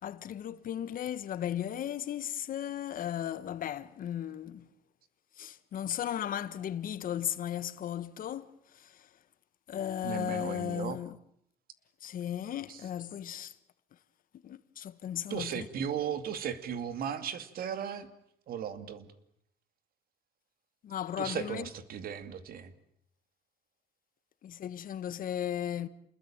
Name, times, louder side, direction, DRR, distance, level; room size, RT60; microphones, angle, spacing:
voice 1, 0.0-4.7 5.4-8.5 8.7-9.1 9.7-11.2 12.0-13.5 14.4-15.7 20.8-21.7 24.4-25.9, left 10 dB, 55° left, 1.5 m, -36 dB
voice 2, 10.0-11.0 12.7-12.8 15.3-18.1 18.5-19.1 21.2-22.7, right 8 dB, 60° right, 2.5 m, -36 dB
28.5 x 21.0 x 9.0 m
cardioid pair, 110°, 17 cm